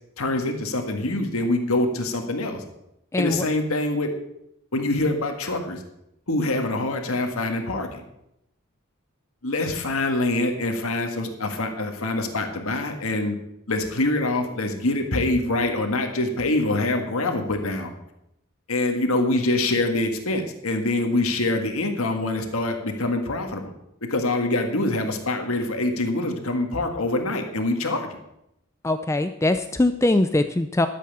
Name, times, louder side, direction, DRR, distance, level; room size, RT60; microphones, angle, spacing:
voice 1, 0.2-2.6 3.2-4.1 4.7-5.8 6.3-8.0 9.4-13.3 13.7-17.9 18.7-23.7 24.1-28.2, left 2 dB, 80° left, 4 dB, 1.7 m, -25 dB
voice 2, 3.1-3.4 28.8-30.9, left 2 dB, 15° left, 9 dB, 0.4 m, -22 dB
12.5 x 7.7 x 7.1 m, 0.82 s
head